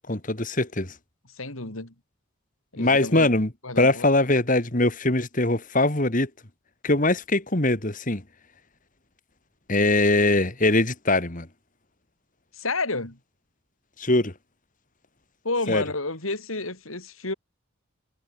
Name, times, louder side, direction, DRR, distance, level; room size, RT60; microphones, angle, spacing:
voice 1, 0.1-0.9 2.8-3.5 3.8-6.3 6.8-8.2 9.7-11.5 14.0-14.3 15.7-15.8, left 2 dB, 40° left, 2.6 m, -22 dB
voice 2, 1.4-1.9 2.7-3.3 3.6-4.0 12.5-13.2 15.4-17.3, left 3 dB, 85° left, 5.5 m, -30 dB
head